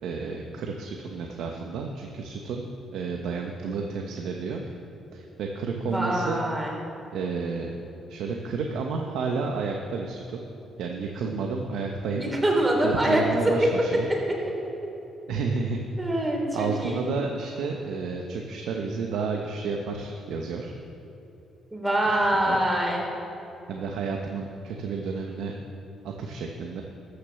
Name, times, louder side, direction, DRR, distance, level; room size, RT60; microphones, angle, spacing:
voice 1, 0.0-4.6 5.1-6.4 7.1-7.7 8.1-10.4 10.8-12.3 12.8-14.1 15.3-15.8 16.5-20.7 22.5-22.6 23.7-25.6 26.0-26.8, right 4 dB, 85° right, 2 dB, 0.9 m, -31 dB
voice 2, 5.8-6.7 12.2-13.2 14.3-14.5 16.0-17.1 21.7-23.0, right 1 dB, 15° right, -1 dB, 3.1 m, -25 dB
13.5 x 6.7 x 6.9 m, 2.9 s
cardioid pair, 90°, 0 cm